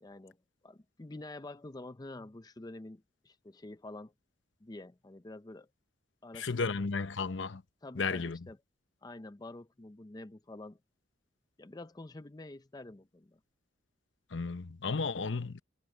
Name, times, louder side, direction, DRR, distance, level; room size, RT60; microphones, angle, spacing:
voice 1, 0.0-0.4 0.6-4.1 4.6-5.7 6.2-6.7 7.8-8.6 9.0-10.8 11.6-13.4, left 2 dB, 20° left, 0.5 m, -47 dB
voice 2, 6.3-7.6 8.0-8.4 14.3-15.6, left 4 dB, 80° left, 0.8 m, -33 dB
head